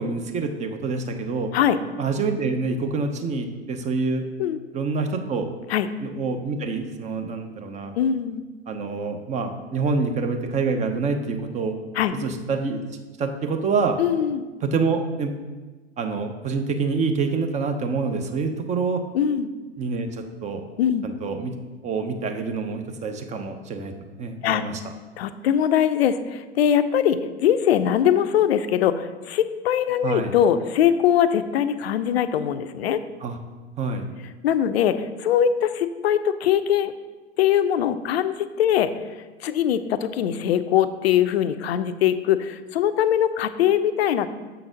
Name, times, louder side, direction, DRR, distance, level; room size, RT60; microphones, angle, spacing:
voice 1, 0.0-1.5 2.0-4.2 4.7-5.5 6.0-7.9 8.7-11.8 12.1-12.8 13.2-14.0 14.6-15.4 16.0-19.0 19.8-20.6 21.0-21.6 21.8-23.9 24.2-24.8 30.0-30.3 33.2-33.4 33.8-34.1, right 4 dB, 20° right, 6 dB, 0.6 m, -26 dB
voice 2, 8.0-8.4 12.0-12.1 14.0-14.4 19.1-19.5 20.8-21.1 24.4-24.6 25.2-33.0 34.4-36.9 37.4-38.9 39.4-44.3, left 9 dB, 65° left, 11 dB, 0.5 m, -21 dB
6.6 x 3.9 x 5.0 m, 1.3 s
figure-of-eight pair, 95°, 33 cm